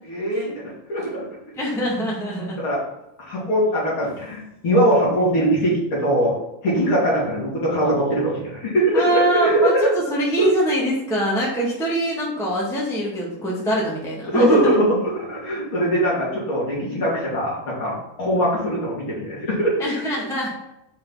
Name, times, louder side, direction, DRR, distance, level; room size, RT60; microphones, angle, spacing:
voice 1, 0.1-1.3 2.6-2.8 3.2-6.4 6.6-9.9 10.4-10.5 14.3-19.8, right 1 dB, 35° left, -6 dB, 3.3 m, -21 dB
voice 2, 1.5-2.6 8.9-14.8 19.8-20.5, right 1 dB, ahead, -5 dB, 0.9 m, -23 dB
7.6 x 5.3 x 5.9 m, 0.86 s
omnidirectional pair, 4.4 m